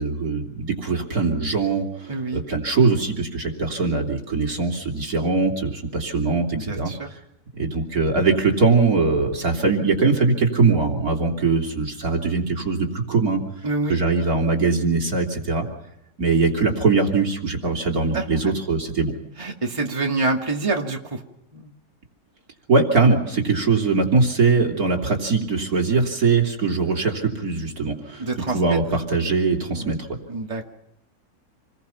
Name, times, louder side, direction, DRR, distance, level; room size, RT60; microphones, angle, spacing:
voice 1, 0.0-7.2 7.5-13.4 13.9-15.7 16.2-19.1 22.7-28.3 28.5-30.0, right 4 dB, 60° right, 0 dB, 3.7 m, -21 dB
voice 2, 2.1-2.4 6.5-7.1 13.6-14.0 18.1-18.5 19.4-21.2 21.5-21.7 28.2-28.8 29.7-29.9 30.3-30.6, right 3 dB, 20° right, 1 dB, 2.2 m, -26 dB
28.0 x 21.0 x 5.8 m, 0.83 s
omnidirectional pair, 1.8 m